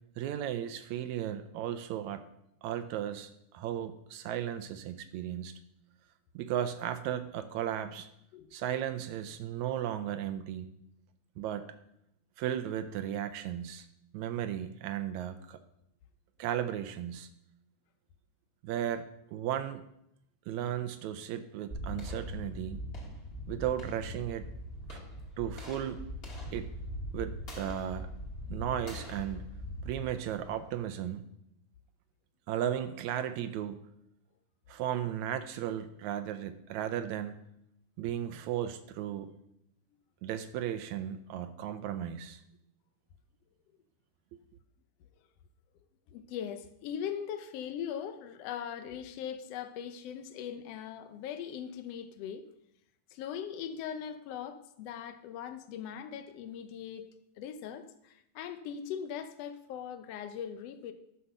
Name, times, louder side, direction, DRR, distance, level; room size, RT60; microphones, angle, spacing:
voice 1, 0.2-2.2 2.6-5.5 6.4-8.1 8.5-10.7 11.4-11.7 12.4-13.9 14.1-15.6 16.4-17.3 18.6-19.1 19.3-19.8 20.5-22.8 23.5-24.5 24.9-25.0 25.4-26.0 26.5-26.7 27.1-28.1 28.5-29.4 29.9-31.2 32.5-33.8 34.7-37.4 38.0-39.3 40.2-42.4 44.3-44.4, right 10 dB, 80° right, 10 dB, 1.8 m, -35 dB
sound 1, 21.7-30.8, equal, 25° left, 1.6 m, -41 dB
voice 2, 46.1-52.4 53.1-57.1 57.4-60.9, left 8 dB, 80° left, 9 dB, 1.4 m, -40 dB
9.9 x 5.6 x 6.6 m, 0.79 s
omnidirectional pair, 3.6 m